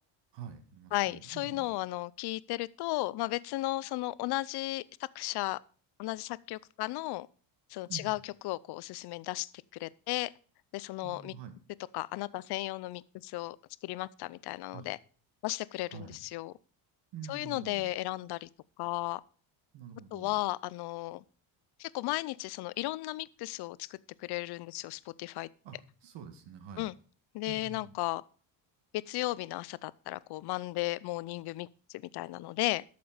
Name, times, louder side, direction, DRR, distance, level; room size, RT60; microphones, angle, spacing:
voice 1, 0.3-1.7 7.9-8.2 11.0-11.6 14.7-14.9 15.9-16.2 17.1-17.9 19.7-20.3 25.6-26.9 27.5-27.9, right 7 dB, 60° right, 2.0 m, -46 dB
voice 2, 0.9-4.8 5.1-5.6 6.0-7.3 7.7-9.5 9.8-10.3 10.7-11.4 11.9-13.6 13.8-15.0 15.4-16.5 17.3-18.5 18.8-19.2 20.1-21.2 21.8-25.5 26.8-26.9 27.3-28.2 28.9-32.8, left 18 dB, 55° left, 0.6 m, -35 dB
12.0 x 6.9 x 5.0 m
cardioid pair, 135°, 47 cm